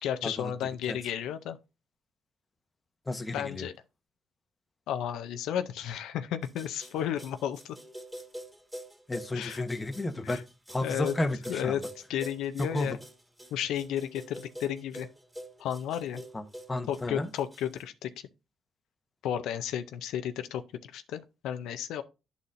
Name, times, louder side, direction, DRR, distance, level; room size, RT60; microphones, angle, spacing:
voice 1, 0.0-1.6 3.3-3.7 4.9-7.8 9.3-9.7 10.2-10.4 10.8-11.1 11.5-11.8 12.1-13.0 13.5-15.1 15.6-16.2 16.9-18.1 19.2-22.0, left 10 dB, 85° left, 0.5 m, -33 dB
voice 2, 3.1-3.7 9.1-11.9 12.6-13.0 16.3-17.3, left 2 dB, 20° left, 0.8 m, -33 dB
sound 1, 6.4-17.8, equal, 15° right, 2.2 m, -46 dB
11.5 x 4.1 x 2.5 m
cardioid pair, 90°, 0 cm